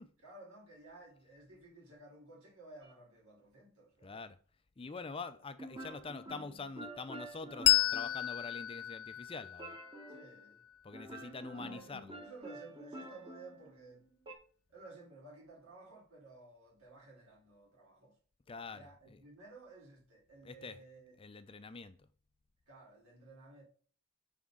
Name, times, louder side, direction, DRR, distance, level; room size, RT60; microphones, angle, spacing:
voice 1, 0.2-4.2 10.1-10.6 11.1-14.0 14.7-18.1 18.5-21.2 22.7-23.6, right 2 dB, 80° right, 3.4 m, -55 dB
sound 1, 2.8-2.9 5.6-8.8 9.6-10.4 10.9-14.3, right 1 dB, 20° right, 1.2 m, -49 dB
voice 2, 4.0-4.4 4.8-9.8 10.8-12.2 18.5-19.2 20.4-20.8 21.2-22.0, left 4 dB, 25° left, 0.4 m, -45 dB
Bell, 7.6-10.7, left 14 dB, 80° left, 0.5 m, -32 dB
10.0 x 4.3 x 3.7 m
head